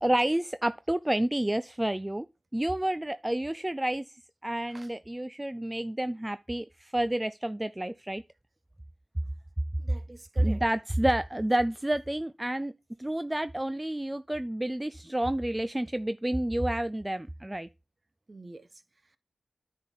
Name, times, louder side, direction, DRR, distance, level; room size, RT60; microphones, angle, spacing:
voice 1, 0.0-2.3 2.5-4.1 4.4-8.2 10.4-12.7 13.0-17.7, right 1 dB, 15° right, 0.4 m, -29 dB
voice 2, 9.8-10.6 18.3-19.2, right 2 dB, 35° right, 0.9 m, -47 dB
9.6 x 3.5 x 5.7 m
cardioid pair, 60°, 0 cm